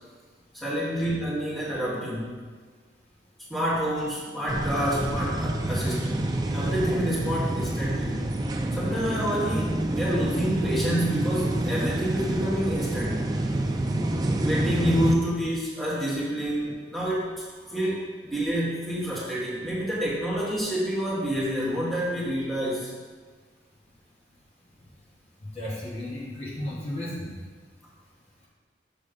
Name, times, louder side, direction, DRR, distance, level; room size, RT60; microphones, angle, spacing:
voice 1, 0.5-2.4 3.5-8.2 8.7-13.3 14.4-17.3 17.6-22.9, equal, ahead, -9 dB, 1.5 m, -28 dB
sound 1, 4.5-15.2, right 1 dB, 20° right, 0.4 m, -27 dB
voice 2, 25.4-27.3, left 1 dB, 35° left, -7 dB, 1.3 m, -34 dB
6.8 x 3.3 x 5.1 m, 1.5 s
head